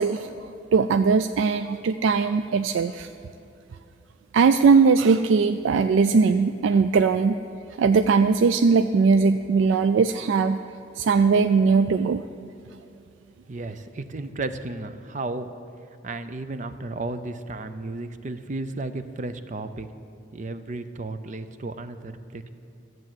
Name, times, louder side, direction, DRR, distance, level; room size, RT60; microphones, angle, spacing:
voice 1, 0.0-3.1 4.3-7.4 7.8-10.6 11.0-12.2, right 5 dB, 90° right, 11 dB, 0.3 m, -20 dB
voice 2, 13.5-15.5 16.0-19.9 20.3-22.5, right 2 dB, 40° right, 10 dB, 0.6 m, -33 dB
14.0 x 7.7 x 7.6 m, 2.5 s
head